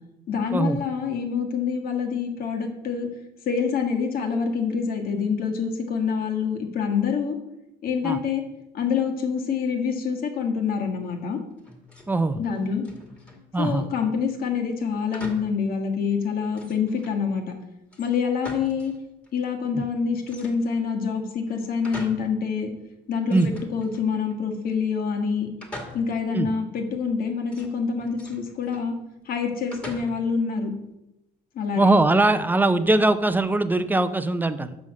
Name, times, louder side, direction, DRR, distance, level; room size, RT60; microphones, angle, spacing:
voice 1, 0.3-3.1 3.4-7.4 7.8-8.4 8.7-11.4 12.4-12.8 13.6-17.4 18.0-18.9 19.3-22.7 23.1-25.5 25.9-28.9 29.2-30.7 31.5-31.9, left 6 dB, 60° left, 3 dB, 1.5 m, -26 dB
sound 1, 11.6-12.1 12.4-13.5 15.1-15.6 16.0-16.1 16.5-17.2 17.9-19.0 19.2-19.3 20.2-20.9 21.4-22.4 22.7-22.8 23.3-24.3 25.6-26.3 27.5-28.9 29.7-30.4, left 1 dB, 5° left, 1.8 m, -42 dB
voice 2, 12.1-12.4 13.5-13.8 19.7-19.8 23.3-23.5 26.3-26.5 31.8-34.8, right 2 dB, 10° right, 11 dB, 0.5 m, -21 dB
6.2 x 5.6 x 6.3 m, 0.93 s
cardioid pair, 110°, 17 cm